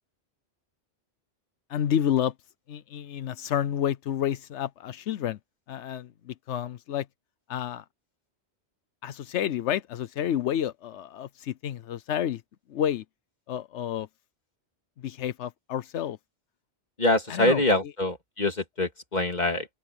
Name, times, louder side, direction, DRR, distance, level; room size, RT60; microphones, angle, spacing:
voice 1, 1.7-2.3 2.7-5.4 5.7-7.1 7.5-7.8 9.0-12.4 12.7-13.0 13.5-14.1 15.0-16.2 17.3-17.6, left 10 dB, 90° left, 1.0 m, -29 dB
voice 2, 17.0-19.7, left 1 dB, 40° left, 2.9 m, -25 dB
open air
omnidirectional pair, 1.1 m